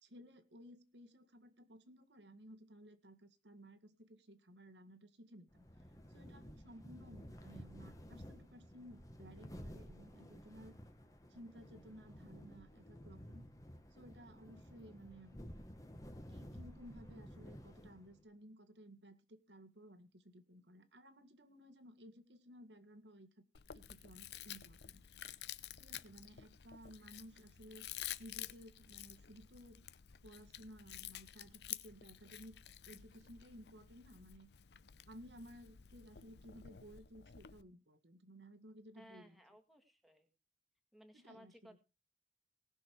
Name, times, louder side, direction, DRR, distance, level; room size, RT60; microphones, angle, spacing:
voice 1, 0.0-5.6 6.1-10.7 11.3-13.4 13.9-15.4 16.3-23.4 23.7-25.0 25.8-27.9 28.2-29.9 30.2-32.6 32.9-34.5 35.1-39.4 41.1-41.8, equal, 90° right, 7 dB, 1.9 m, -57 dB
sound 1, 5.5-18.2, equal, 20° left, 1.5 m, -53 dB
Chewing mastication, 23.5-37.6, left 12 dB, 75° left, 0.7 m, -51 dB
voice 2, 38.9-40.3 40.9-41.8, equal, ahead, 5 dB, 1.9 m, -60 dB
19.0 x 6.5 x 4.7 m, 0.29 s
head